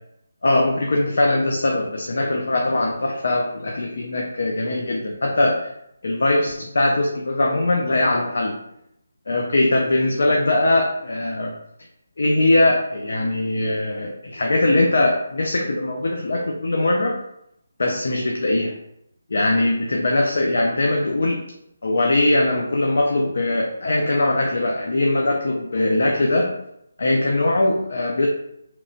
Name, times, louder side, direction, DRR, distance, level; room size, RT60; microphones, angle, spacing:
voice 1, 0.4-5.7 6.0-8.6 9.3-11.6 12.2-17.2 17.8-18.7 19.3-21.4 21.8-26.5 27.0-28.3, left 2 dB, 55° left, 0 dB, 0.3 m, -21 dB
2.8 x 2.1 x 2.6 m, 0.78 s
hypercardioid pair, 180°, 0 cm